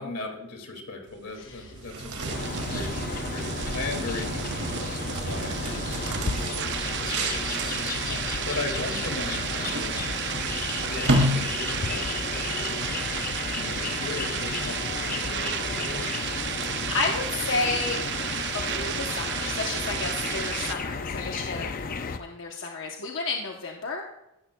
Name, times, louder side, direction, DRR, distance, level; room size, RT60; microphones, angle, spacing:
voice 1, 0.0-10.0 10.7-13.1 13.5-16.2, left 3 dB, 85° left, 3 dB, 2.2 m, -38 dB
sound 1, 1.1-20.7, right 8 dB, 50° right, 0.6 m, -33 dB
sound 2, 1.7-12.0, equal, 70° right, 2.2 m, -32 dB
sound 3, 2.3-22.2, left 4 dB, 40° left, 0.5 m, -33 dB
voice 2, 16.9-18.0 18.5-21.7 22.2-24.1, left 3 dB, 55° left, 1 dB, 0.9 m, -31 dB
15.0 x 12.5 x 2.2 m, 0.91 s
head